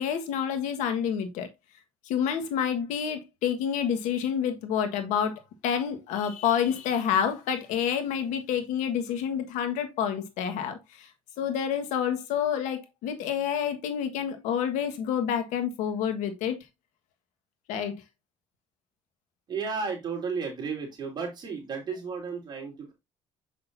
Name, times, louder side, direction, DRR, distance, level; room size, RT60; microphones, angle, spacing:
voice 1, 0.0-1.5 2.0-11.1 11.4-16.6 17.7-17.9, left 8 dB, 85° left, 1.5 m, -28 dB
voice 2, 19.5-22.9, right 5 dB, 35° right, 3.3 m, -33 dB
7.7 x 6.5 x 2.7 m
cardioid pair, 125°, 12 cm